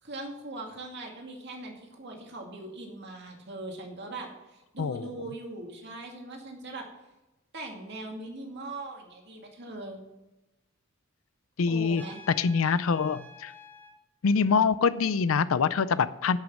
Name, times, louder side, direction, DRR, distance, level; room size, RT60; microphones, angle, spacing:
voice 1, 0.0-6.9 7.5-10.0 11.7-12.2, right 2 dB, 60° right, 1 dB, 2.3 m, -40 dB
voice 2, 4.8-5.1 11.6-12.0 12.4-13.5 14.2-16.4, left 5 dB, 85° left, 15 dB, 0.5 m, -25 dB
Trumpet, 11.9-14.0, left 1 dB, 10° left, 1.2 m, -49 dB
11.5 x 6.3 x 7.5 m, 0.99 s
head